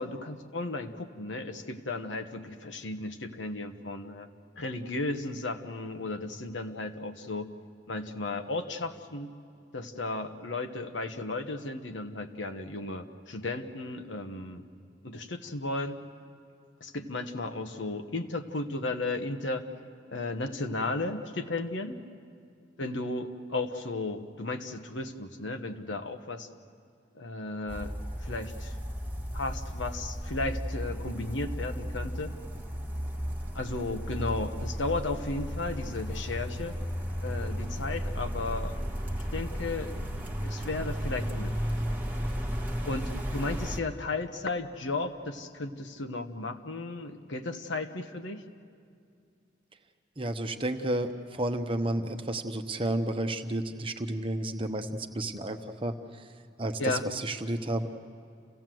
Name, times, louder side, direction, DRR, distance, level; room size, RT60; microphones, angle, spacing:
voice 1, 0.0-4.3 4.5-7.5 7.9-9.3 9.7-14.7 15.0-16.0 16.8-19.6 20.1-22.0 22.8-26.5 27.1-27.9 28.2-28.7 29.3-32.3 33.5-36.8 37.2-38.8 39.1-39.9 40.4-41.5 42.8-48.4 56.8-57.0, left 2 dB, 80° left, 7 dB, 1.2 m, -34 dB
sound 1, 27.7-43.8, equal, 10° right, 1.2 m, -34 dB
voice 2, 50.2-56.3 56.6-57.9, right 1 dB, 30° right, 6 dB, 0.9 m, -32 dB
28.5 x 16.5 x 7.7 m, 2.3 s
head